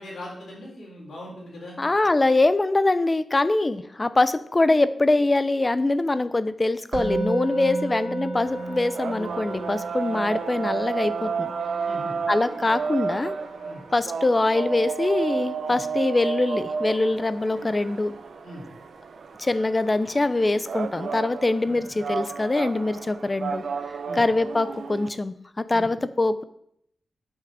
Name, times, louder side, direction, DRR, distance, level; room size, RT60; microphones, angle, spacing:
voice 1, 0.0-1.8 11.8-12.2 13.6-13.8 15.7-15.8 18.4-18.7 24.0-24.2 25.7-25.9, equal, 65° left, -3 dB, 4.3 m, -40 dB
voice 2, 1.8-11.5 12.3-13.3 13.9-18.1 19.4-23.6 24.1-26.4, left 2 dB, 20° left, 13 dB, 0.5 m, -23 dB
Musical instrument, 6.9-18.0, right 2 dB, 90° right, 2.8 m, -35 dB
sound 1, 8.4-25.1, right 5 dB, 65° right, 0.6 m, -32 dB
8.2 x 5.9 x 7.4 m, 0.72 s
wide cardioid pair, 175°, 0 cm